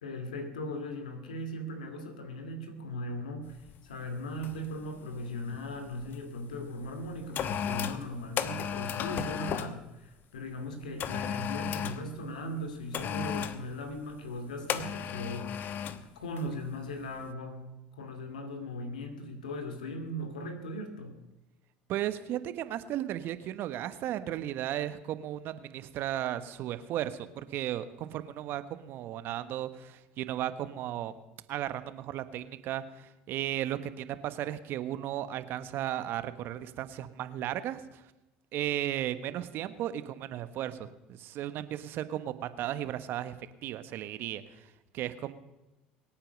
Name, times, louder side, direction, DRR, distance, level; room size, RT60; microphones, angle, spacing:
voice 1, 0.0-21.2, left 1 dB, 90° left, 7 dB, 2.3 m, -39 dB
sound 1, 3.6-3.8 4.4-4.7 5.0-6.2 6.8-9.8 11.0-12.1 12.9-13.6 14.7-16.0 16.4-16.6, left 8 dB, 50° left, 1.0 m, -34 dB
voice 2, 21.9-31.1 31.5-38.0 38.5-43.3 43.6-45.3, right 12 dB, 55° right, 12 dB, 1.1 m, -35 dB
23.5 x 8.9 x 5.3 m, 0.99 s
hypercardioid pair, 75°, 4 cm